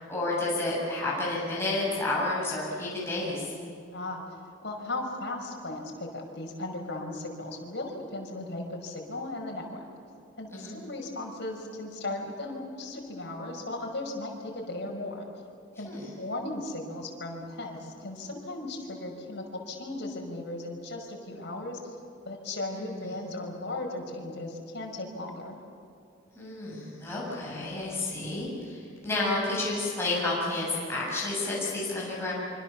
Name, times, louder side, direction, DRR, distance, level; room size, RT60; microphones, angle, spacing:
voice 1, 0.1-3.5 10.5-10.8 15.9-16.1 22.7-23.2 26.4-32.3, left 2 dB, 15° left, -6 dB, 7.3 m, -31 dB
voice 2, 3.9-9.9 10.4-15.3 15.8-21.8 22.3-25.6, left 2 dB, 60° left, 1 dB, 5.6 m, -36 dB
26.5 x 25.5 x 7.2 m, 2.6 s
head